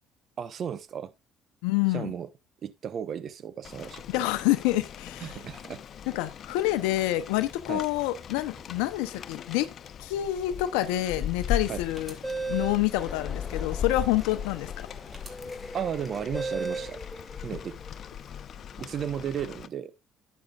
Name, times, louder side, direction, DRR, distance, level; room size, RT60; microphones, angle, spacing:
voice 1, 0.4-1.1 1.9-2.3 2.6-4.0 5.2-5.8 7.7-7.8 11.7-11.8 15.7-17.0 17.4-17.8 18.8-19.9, right 8 dB, 50° right, 0.9 m, -34 dB
voice 2, 1.6-2.1 4.1-5.4 6.1-9.7 10.0-12.2 12.5-14.9, left 15 dB, 90° left, 0.7 m, -27 dB
Rain, 3.6-19.7, left 8 dB, 55° left, 0.8 m, -38 dB
sound 1, 11.9-12.8 15.1-15.3 16.3-16.9, right 3 dB, 20° right, 2.7 m, -33 dB
sound 2, 12.9-19.0, left 2 dB, 15° left, 1.9 m, -45 dB
11.5 x 9.4 x 2.4 m
supercardioid pair, 75°, 0 cm